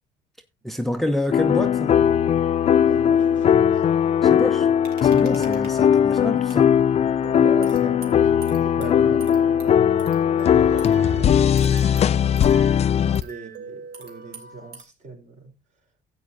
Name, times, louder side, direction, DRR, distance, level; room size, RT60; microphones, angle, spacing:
voice 1, 0.6-2.1 4.2-4.7 5.0-6.7 8.8-8.9 13.0-13.2, left 1 dB, ahead, 0.7 m, -28 dB
sound 1, 1.3-13.2, left 8 dB, 40° left, 0.4 m, -19 dB
voice 2, 2.9-3.9 5.4-5.5 7.3-12.8 13.2-15.6, right 2 dB, 45° right, 3.9 m, -40 dB
sound 2, 4.8-5.7 6.5-6.6 7.2-14.8, right 5 dB, 70° right, 2.9 m, -43 dB
13.5 x 8.6 x 2.6 m
cardioid pair, 110°, 17 cm